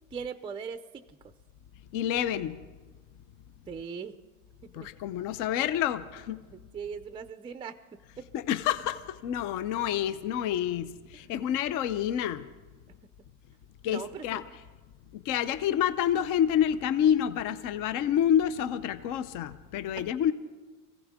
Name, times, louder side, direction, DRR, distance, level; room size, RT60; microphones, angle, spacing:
voice 1, 0.1-1.0 3.7-4.2 4.6-4.9 6.5-8.3 13.9-14.4 20.0-20.1, right 6 dB, 15° right, 11 dB, 0.4 m, -40 dB
voice 2, 1.9-2.6 4.7-6.4 8.3-12.5 13.8-14.4 15.1-20.3, left 10 dB, 55° left, 13 dB, 0.7 m, -28 dB
24.0 x 16.0 x 3.6 m, 1.3 s
supercardioid pair, 125°, 38 cm